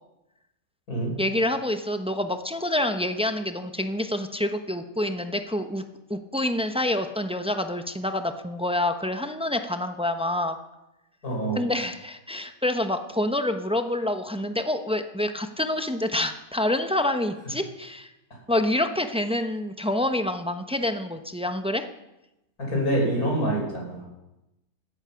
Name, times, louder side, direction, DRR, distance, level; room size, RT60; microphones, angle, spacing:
voice 1, 1.2-5.8 6.1-10.6 11.6-18.1 18.5-21.8, left 1 dB, 5° right, 7 dB, 0.7 m, -27 dB
voice 2, 11.2-11.6 22.6-24.1, right 1 dB, 85° left, -1 dB, 6.3 m, -26 dB
16.5 x 13.5 x 5.8 m, 0.93 s
omnidirectional pair, 1.5 m